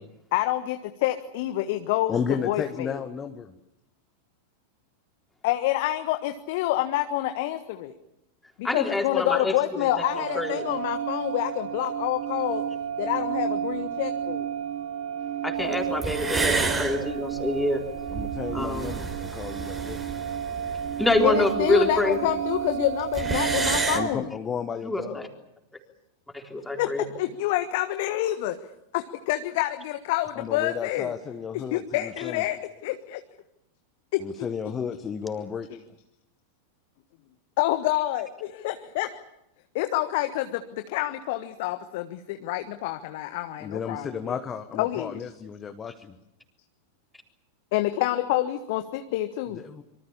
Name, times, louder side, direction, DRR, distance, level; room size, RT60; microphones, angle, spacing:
voice 1, 0.3-2.2 2.4-3.0 5.4-7.9 8.6-12.6 13.0-14.5 21.2-24.4 26.8-28.6 28.9-31.1 31.5-33.2 34.1-34.5 37.6-39.2 39.7-44.4 44.7-45.2 47.7-49.6, left 15 dB, 50° left, 9 dB, 1.3 m, -27 dB
voice 2, 2.1-3.5 18.1-20.0 23.9-25.2 30.3-32.4 34.2-35.7 43.6-46.1 49.5-49.8, left 6 dB, 20° left, 7 dB, 1.5 m, -33 dB
voice 3, 8.6-9.9 10.2-10.7 15.4-17.8 18.5-19.0 21.0-22.2 24.8-25.3 26.3-27.0, left 1 dB, 5° left, 3 dB, 3.9 m, -26 dB
sound 1, 9.9-24.1, right 9 dB, 50° right, 2.4 m, -31 dB
sound 2, 15.7-15.8 16.0-22.0 22.3-22.4 22.6-22.7 22.9-24.0, right 3 dB, 15° right, 4.3 m, -31 dB
26.0 x 24.5 x 7.2 m, 0.84 s
figure-of-eight pair, 90°, 0 cm